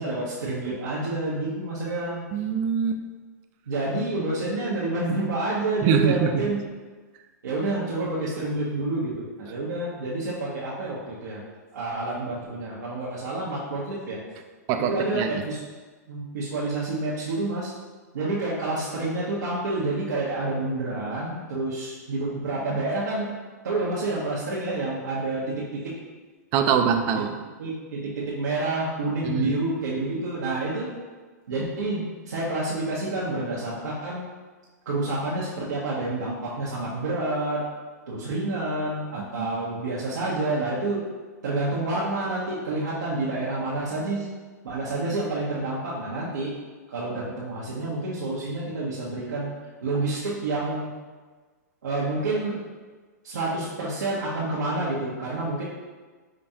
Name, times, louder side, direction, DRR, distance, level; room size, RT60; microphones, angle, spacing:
voice 1, 0.0-2.2 3.7-6.6 7.4-11.4 11.7-14.2 14.9-15.6 16.1-17.7 18.1-23.3 23.6-25.9 27.6-30.9 31.5-34.3 34.9-37.7 38.1-41.1 41.4-44.3 44.6-46.5 46.9-49.5 49.8-50.9 51.8-52.6 53.2-55.6, right 2 dB, 80° right, -8 dB, 0.8 m, -28 dB
voice 2, 2.3-3.0 5.8-6.3 14.7-15.3 26.5-27.3 29.2-29.6 39.4-39.5, right 7 dB, 35° right, 6 dB, 0.3 m, -23 dB
4.8 x 2.3 x 2.7 m, 1.4 s
hypercardioid pair, 125°, 9 cm